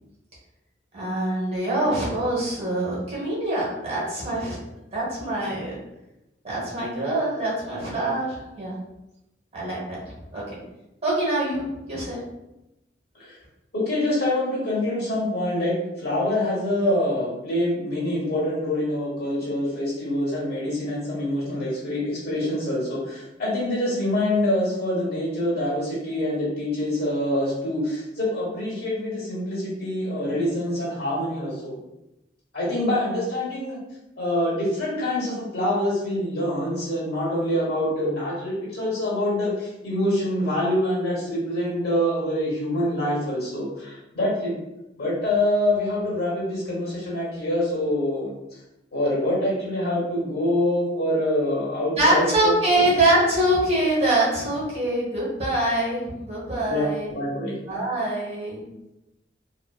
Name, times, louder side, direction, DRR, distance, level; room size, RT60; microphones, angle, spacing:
voice 1, 0.9-4.6 4.9-5.8 6.4-8.7 9.5-10.0 10.3-10.6 11.0-12.2 51.9-57.1 57.7-58.6, right 1 dB, 35° right, -6 dB, 1.0 m, -24 dB
voice 2, 13.7-31.8 32.5-33.8 34.2-44.5 45.0-48.3 48.9-52.9 56.7-57.6, left 1 dB, 65° left, -5 dB, 1.0 m, -25 dB
2.8 x 2.1 x 2.3 m, 0.91 s
head